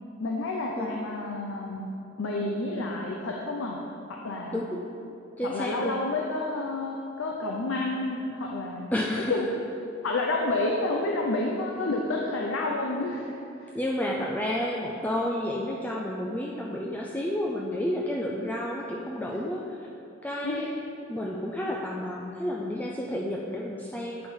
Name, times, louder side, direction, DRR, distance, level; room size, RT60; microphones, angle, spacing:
voice 1, 0.2-1.8 2.2-3.8 4.1-4.6 5.4-8.9 9.3-9.5 10.0-13.7 20.4-20.7, left 2 dB, 90° left, -1 dB, 0.6 m, -30 dB
voice 2, 5.4-5.9 8.9-9.4 13.7-19.9 20.2-20.7 21.1-24.3, left 1 dB, 10° left, -3 dB, 0.3 m, -31 dB
8.5 x 4.4 x 3.6 m, 2.7 s
head